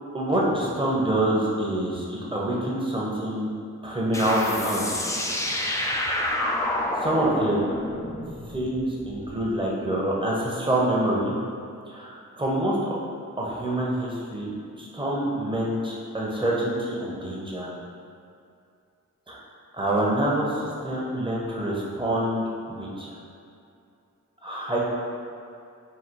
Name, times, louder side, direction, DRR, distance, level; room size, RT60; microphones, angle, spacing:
voice 1, 0.1-3.5 3.8-5.1 6.0-6.1 7.0-7.7 8.5-11.3 11.8-13.0 13.4-17.7 19.3-19.4 19.7-23.1 24.4-24.8, right 1 dB, 15° right, -5 dB, 0.9 m, -26 dB
sound 1, 4.1-9.4, left 1 dB, 10° left, 0.4 m, -29 dB
4.0 x 2.3 x 4.5 m, 2.5 s
cardioid pair, 65°, 32 cm